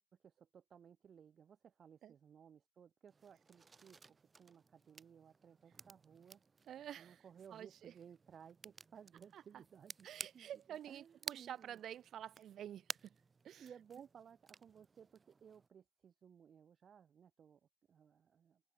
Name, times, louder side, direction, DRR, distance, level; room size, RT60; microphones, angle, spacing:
voice 1, 0.0-4.0 4.4-6.4 7.0-11.8 13.6-17.6 17.9-18.6, right 7 dB, 55° right, 5.1 m, -60 dB
sound 1, 3.1-15.7, right 4 dB, 35° right, 1.1 m, -55 dB
voice 2, 6.7-7.2 7.5-7.9 9.3-9.4 10.0-13.1 13.4-13.7, right 10 dB, 70° right, 0.9 m, -49 dB
cardioid pair, 90°, 0 cm